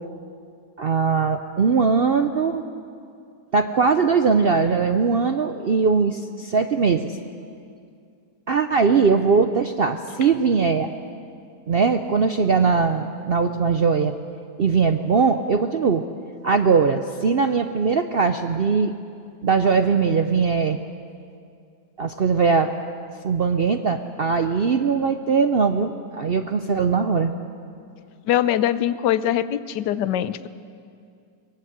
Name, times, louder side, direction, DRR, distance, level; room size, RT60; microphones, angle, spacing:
voice 1, 0.8-2.6 3.5-7.2 8.5-10.9 11.7-14.1 14.6-16.0 16.4-18.9 19.4-20.8 22.0-22.7 23.2-27.3, right 5 dB, 60° right, 7 dB, 0.6 m, -20 dB
voice 2, 28.3-30.5, left 11 dB, 85° left, 14 dB, 1.3 m, -22 dB
21.0 x 18.5 x 8.0 m, 2.4 s
omnidirectional pair, 1.8 m